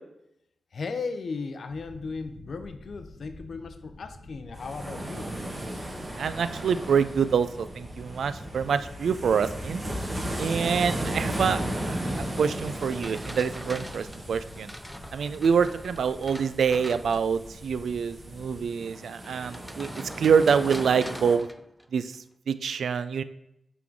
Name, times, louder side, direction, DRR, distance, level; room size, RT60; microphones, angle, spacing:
voice 1, 0.7-5.3 19.2-19.5, left 4 dB, 60° left, 9 dB, 0.5 m, -36 dB
sound 1, 1.7-18.7, left 2 dB, 80° left, 1.4 m, -48 dB
sound 2, 4.5-21.4, right 1 dB, 25° right, 1.2 m, -36 dB
voice 2, 6.2-9.8 10.4-14.7 15.1-19.9 20.2-21.5 21.9-22.2 22.5-23.2, right 6 dB, 85° right, 13 dB, 0.3 m, -26 dB
sound 3, 12.4-17.5 19.4-22.2, equal, ahead, 0.3 m, -44 dB
6.0 x 3.7 x 4.6 m, 0.80 s
wide cardioid pair, 110°, 0 cm